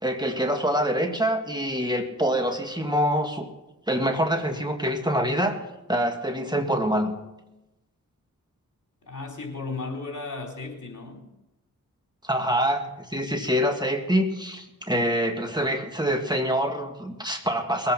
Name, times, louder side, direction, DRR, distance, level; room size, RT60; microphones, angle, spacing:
voice 1, 0.0-3.5 3.9-5.6 5.9-7.1 12.2-17.9, equal, 10° right, 4 dB, 1.8 m, -25 dB
voice 2, 9.1-11.3, left 3 dB, 60° left, 1 dB, 3.7 m, -35 dB
21.0 x 8.5 x 5.8 m, 0.96 s
cardioid pair, 55°, 34 cm